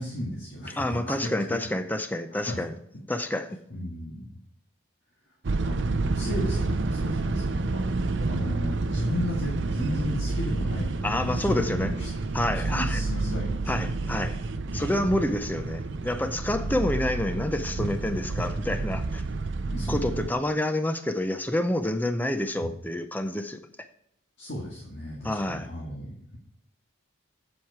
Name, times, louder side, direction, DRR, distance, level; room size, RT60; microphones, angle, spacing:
voice 1, 0.0-1.6 2.3-2.6 3.7-4.3 5.5-12.1 12.6-14.2 14.7-15.0 16.6-17.1 19.6-20.3 22.6-22.7 24.4-26.4, left 1 dB, 55° left, 1.9 m, -35 dB
voice 2, 0.8-2.7 3.1-3.6 11.0-11.9 12.3-13.0 13.7-14.4 14.7-19.2 19.9-23.6 25.2-25.7, left 1 dB, 10° left, 0.6 m, -28 dB
sound 1, 5.4-20.3, right 3 dB, 60° right, 0.6 m, -29 dB
7.7 x 7.3 x 4.7 m
head